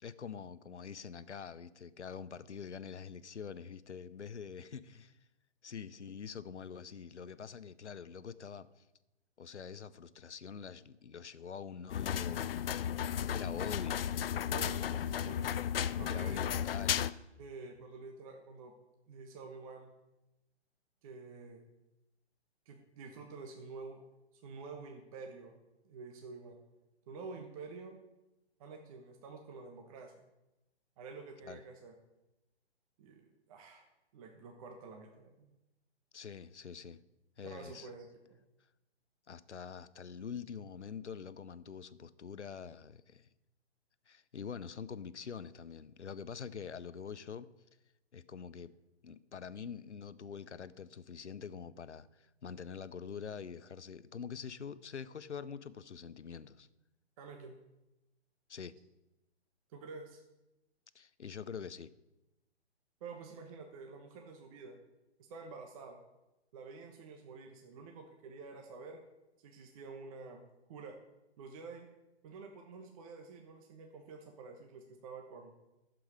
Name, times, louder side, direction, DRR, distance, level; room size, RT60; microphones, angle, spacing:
voice 1, 0.0-5.2 5.6-8.8 9.4-13.0 13.3-14.1 16.1-16.9 31.4-31.6 36.1-37.0 37.4-37.9 39.3-43.3 44.1-47.5 48.1-48.7 49.0-56.7 58.5-58.7 60.9-61.9, left 6 dB, 90° left, 16 dB, 0.7 m, -45 dB
sound 1, 11.9-17.1, left 9 dB, 55° left, 0.5 m, -34 dB
voice 2, 14.5-15.5 16.0-16.7 17.4-18.7 19.1-19.9 21.0-21.7 22.7-24.0 24.3-25.6 25.8-26.6 27.1-28.0 28.6-30.3 31.0-31.9 33.0-33.2 33.5-33.9 34.1-35.5 37.4-38.4 57.2-57.6 59.7-60.2 63.0-64.8 65.3-66.0 66.5-69.0 69.4-70.4 70.7-71.0 71.4-71.9 72.2-75.5, right 4 dB, 30° right, 3 dB, 1.2 m, -49 dB
11.5 x 7.8 x 4.9 m, 0.97 s
figure-of-eight pair, 140°, 34 cm